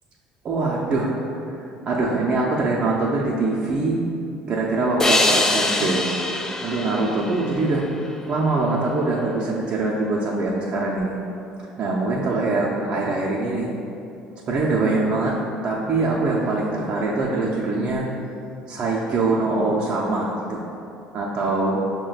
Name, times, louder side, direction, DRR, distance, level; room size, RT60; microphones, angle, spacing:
voice 1, 0.4-1.2 1.5-4.0 4.5-6.1 6.6-7.8 8.3-11.1 11.8-13.7 14.5-15.4 15.6-18.1 18.7-20.6 21.1-21.8, right 3 dB, 45° right, -5 dB, 0.5 m, -23 dB
sound 1, 5.0-8.3, left 2 dB, 20° left, 0.4 m, -24 dB
5.5 x 2.2 x 3.9 m, 2.7 s
supercardioid pair, 90°, 3 cm